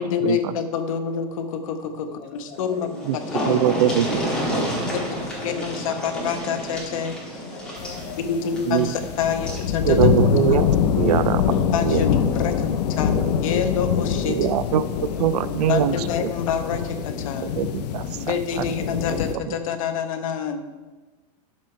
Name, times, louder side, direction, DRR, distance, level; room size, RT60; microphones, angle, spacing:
voice 1, 0.0-3.7 5.4-7.4 8.2-10.1 11.7-12.5 13.0-14.4 15.7-17.5 18.2-20.6, left 7 dB, 55° left, 7 dB, 1.1 m, -27 dB
voice 2, 2.1-2.9 4.3-5.8 7.5-8.5 10.0-10.1 11.1-11.4 12.4-13.3 14.5-14.9 15.2-15.6 17.5-17.6, left 6 dB, 25° left, 4 dB, 1.0 m, -43 dB
sound 1, 2.6-2.7 2.9-9.7 11.0-11.1 11.5-11.6, equal, 5° left, 2.1 m, -30 dB
voice 3, 3.5-4.7 8.6-8.9 9.9-10.7 11.0-11.4 11.8-12.0 14.3-14.9 15.2-15.9 17.4-18.6 19.5-19.6, right 10 dB, 75° right, 16 dB, 0.5 m, -22 dB
sound 2, 7.8-19.3, left 7 dB, 85° left, 0.9 m, -24 dB
10.5 x 7.2 x 4.5 m, 1.2 s
supercardioid pair, 175°, 20 cm